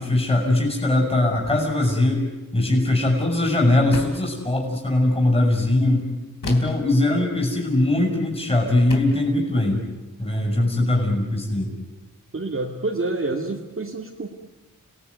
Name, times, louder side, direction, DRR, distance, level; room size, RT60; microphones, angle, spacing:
voice 1, 0.0-2.3 2.5-6.0 6.4-9.8 10.2-11.7, left 1 dB, 15° left, 0 dB, 6.1 m, -21 dB
sound 1, 3.9-4.3 6.4-6.9 8.2-8.3 8.9-9.2, left 3 dB, 80° left, 3.6 m, -32 dB
voice 2, 12.3-14.3, right 2 dB, 40° right, -1 dB, 2.2 m, -27 dB
30.0 x 18.5 x 9.5 m, 1.1 s
wide cardioid pair, 100°, 33 cm